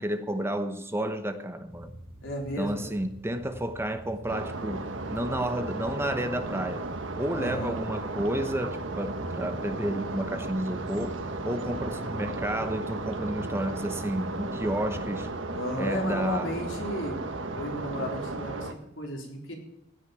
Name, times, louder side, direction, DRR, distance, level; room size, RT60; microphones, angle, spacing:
voice 1, 0.0-1.9 2.6-6.9 7.2-11.2 11.4-15.3 15.8-16.5, right 1 dB, 15° right, 8 dB, 1.0 m, -31 dB
sound 1, 1.7-15.3, right 1 dB, 30° right, 3.9 m, -47 dB
voice 2, 2.2-3.0 7.3-7.8 15.5-17.2 17.5-19.5, equal, 85° left, 0 dB, 4.0 m, -34 dB
sound 2, 4.3-18.7, right 2 dB, 85° right, 1.3 m, -35 dB
16.0 x 6.5 x 9.0 m, 0.82 s
head